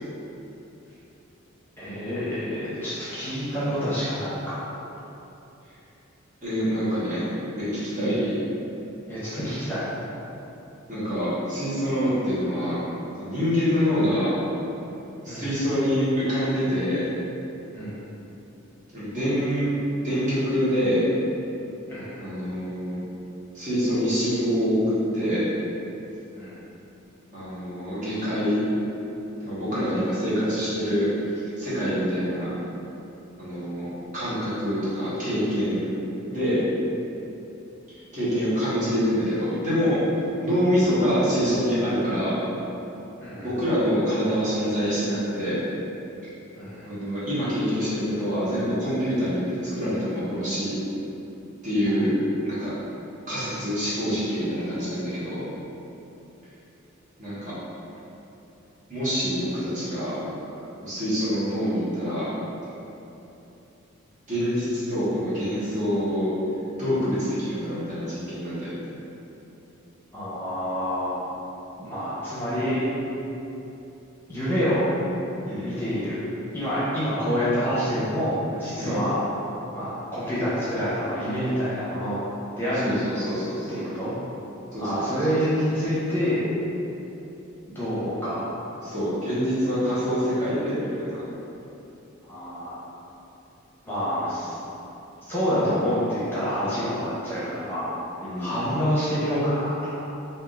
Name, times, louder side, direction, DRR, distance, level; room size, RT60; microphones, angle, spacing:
voice 1, 1.8-4.5 8.0-8.1 9.1-9.8 15.3-15.6 17.7-18.0 21.9-22.2 26.3-26.6 43.2-43.5 46.6-46.9 51.9-52.0 70.1-71.3 71.8-72.8 74.3-74.8 75.6-76.2 76.5-79.2 79.7-82.2 82.5-82.9 83.7-84.1 84.8-86.4 87.7-88.4 92.2-92.8 93.9-94.6 95.3-97.9 98.4-100.0, equal, 10° left, -12 dB, 0.9 m, -27 dB
voice 2, 6.4-8.4 10.9-12.8 13.2-14.3 15.2-17.0 18.9-19.7 20.0-21.0 22.2-23.0 23.5-24.8 25.1-25.5 27.3-28.6 29.4-32.5 33.4-33.9 34.1-35.9 36.3-36.6 38.1-40.0 40.4-42.4 43.4-45.6 46.8-49.4 49.7-50.7 51.6-52.1 52.4-52.7 53.3-55.4 57.2-57.5 58.9-60.2 60.8-62.3 64.3-66.3 66.8-68.7 75.5-75.7 78.8-79.0 82.7-83.8 84.7-85.2 88.8-91.2 98.2-98.5, equal, 35° right, -11 dB, 1.2 m, -26 dB
3.6 x 2.6 x 3.7 m, 3.0 s
head